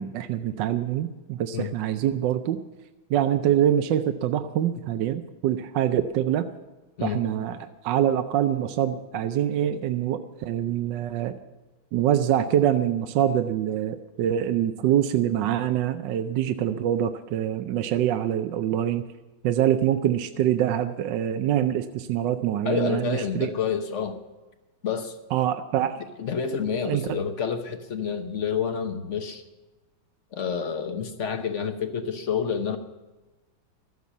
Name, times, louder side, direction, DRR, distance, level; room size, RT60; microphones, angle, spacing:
voice 1, 0.0-2.6 3.1-6.5 7.0-11.3 11.9-19.1 19.4-23.5 25.3-26.0 26.9-27.2, right 10 dB, 70° right, 9 dB, 1.2 m, -25 dB
voice 2, 22.6-24.2 24.8-25.1 26.2-29.4 30.3-32.8, left 7 dB, 50° left, 7 dB, 1.0 m, -28 dB
13.0 x 8.2 x 8.4 m, 1.1 s
omnidirectional pair, 2.2 m